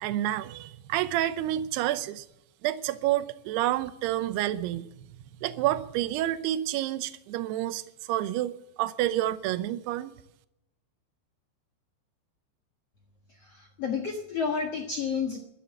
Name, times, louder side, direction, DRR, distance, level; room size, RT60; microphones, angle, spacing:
voice 1, 0.0-2.3 2.6-4.9 5.4-10.1, right 13 dB, 75° right, 2.5 m, -29 dB
voice 2, 13.4-15.4, left 5 dB, 85° left, 1.3 m, -31 dB
12.5 x 12.0 x 8.8 m
omnidirectional pair, 5.3 m